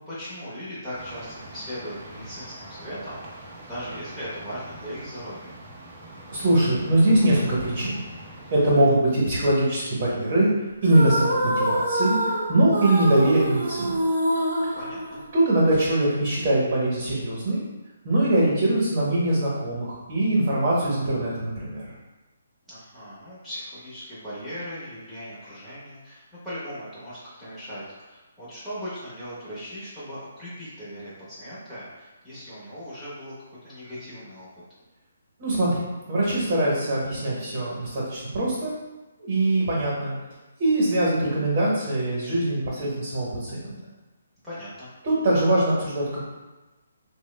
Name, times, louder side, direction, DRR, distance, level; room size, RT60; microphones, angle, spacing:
voice 1, 0.1-5.5 14.7-15.2 22.7-34.5 44.4-44.9, equal, 5° right, -13 dB, 1.0 m, -38 dB
sound 1, 0.9-8.8, right 1 dB, 20° right, 0.5 m, -43 dB
voice 2, 6.3-8.0 8.5-10.5 10.8-12.2 12.5-14.0 15.3-17.6 18.0-21.9 35.4-35.8 36.1-38.7 39.2-40.2 40.6-43.7 45.0-46.2, right 1 dB, 40° right, -6 dB, 1.1 m, -22 dB
sound 2, 10.8-15.7, right 1 dB, 65° right, 0.6 m, -26 dB
3.1 x 2.1 x 3.2 m, 1.1 s
hypercardioid pair, 160°, 0 cm